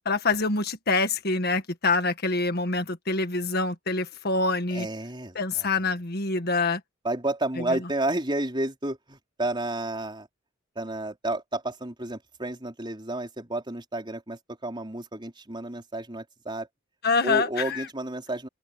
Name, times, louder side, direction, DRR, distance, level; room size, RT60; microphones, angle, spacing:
voice 1, 0.0-4.9 5.3-6.8 7.7-7.8 17.0-17.9, left 3 dB, 55° left, 1.7 m, -26 dB
voice 2, 4.7-5.7 7.0-10.3 10.8-16.7 17.2-18.5, right 2 dB, 25° right, 4.4 m, -31 dB
open air
head